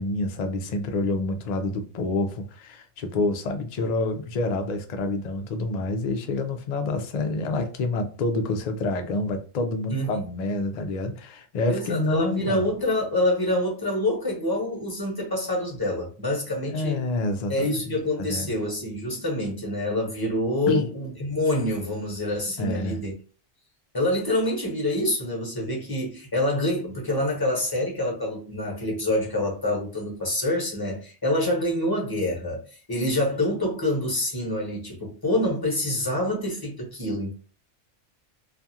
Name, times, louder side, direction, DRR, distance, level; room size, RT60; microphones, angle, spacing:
voice 1, 0.0-12.6 16.7-17.8 18.2-18.5 20.7-20.9 22.6-23.1, left 2 dB, 75° left, 0.3 m, -27 dB
voice 2, 9.9-10.2 11.7-17.0 17.5-23.1 23.9-37.3, left 1 dB, 20° left, 0.8 m, -26 dB
2.4 x 2.3 x 2.7 m
omnidirectional pair, 1.2 m